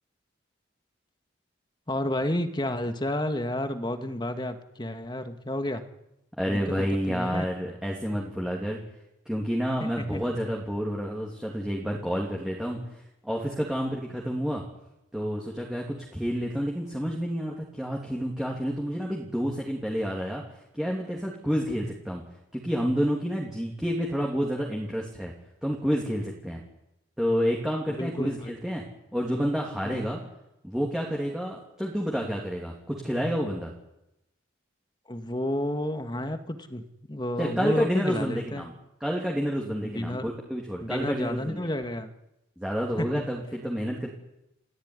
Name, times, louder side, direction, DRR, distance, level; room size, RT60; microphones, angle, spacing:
voice 1, 1.9-5.8 6.5-7.5 9.8-10.2 28.0-28.5 29.8-30.0 35.1-38.7 39.8-40.3 40.8-42.1 43.0-43.2, left 1 dB, 25° left, 8 dB, 1.9 m, -31 dB
voice 2, 6.4-8.8 9.2-14.6 15.1-20.4 20.7-22.2 22.5-25.3 25.6-26.6 27.2-28.8 29.1-30.2 30.6-33.7 37.4-38.7 39.0-41.7 42.6-44.1, equal, 5° right, -2 dB, 3.1 m, -29 dB
30.0 x 15.0 x 9.8 m, 0.89 s
head